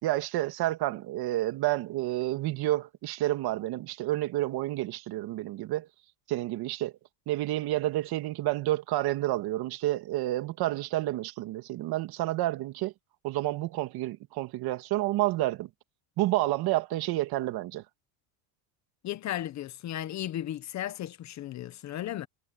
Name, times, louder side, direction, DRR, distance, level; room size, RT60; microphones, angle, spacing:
voice 1, 0.0-5.9 6.3-6.9 7.3-12.9 13.2-15.7 16.2-17.8, right 16 dB, 50° right, 2.2 m, -29 dB
voice 2, 19.0-22.3, left 12 dB, 35° left, 1.1 m, -35 dB
cardioid pair, 150°, 48 cm